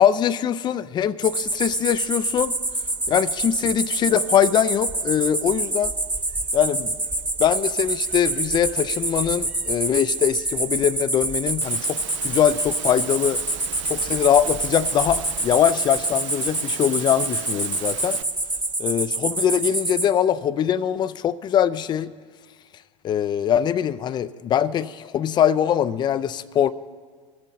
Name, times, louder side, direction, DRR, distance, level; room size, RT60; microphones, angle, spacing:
voice 1, 0.0-2.5 3.1-5.9 6.5-6.9 7.4-12.0 12.2-13.4 13.8-18.2 18.8-22.1 23.0-26.7, left 9 dB, 25° left, 16 dB, 0.4 m, -22 dB
sound 1, 1.2-20.1, right 2 dB, 10° right, 1.1 m, -26 dB
Engine / Mechanisms, 11.6-18.2, right 12 dB, 65° right, 0.6 m, -38 dB
22.0 x 7.5 x 4.2 m, 1.5 s
hypercardioid pair, 85°, 17 cm